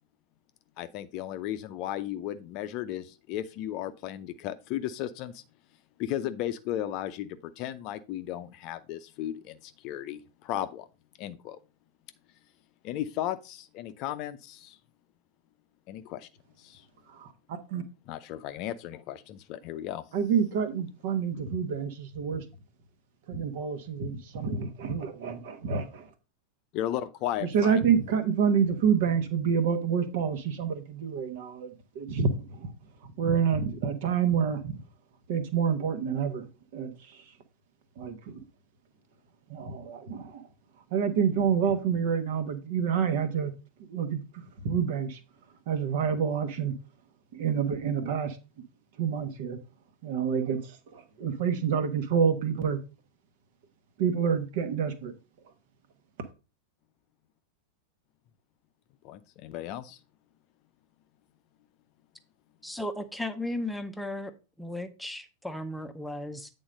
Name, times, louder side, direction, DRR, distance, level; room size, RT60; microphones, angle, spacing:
voice 1, 0.8-5.4 6.0-10.9 11.2-11.6 12.8-14.8 15.9-16.3 16.6-16.8 18.1-20.0 26.7-27.8 59.0-60.0, left 12 dB, 40° left, 0.6 m, -35 dB
voice 2, 17.1-17.8 20.1-22.4 23.3-26.1 27.5-32.7 33.0-34.8 35.3-36.5 36.7-37.2 38.0-38.4 39.5-40.4 40.9-43.5 43.9-44.2 44.6-45.2 45.7-46.7 47.3-48.4 49.0-49.6 50.0-52.8 54.0-55.1, right 7 dB, 50° right, 1.2 m, -28 dB
voice 3, 62.6-64.3 64.6-66.5, left 1 dB, 5° left, 0.8 m, -35 dB
8.7 x 3.8 x 5.2 m
figure-of-eight pair, 90°, 0 cm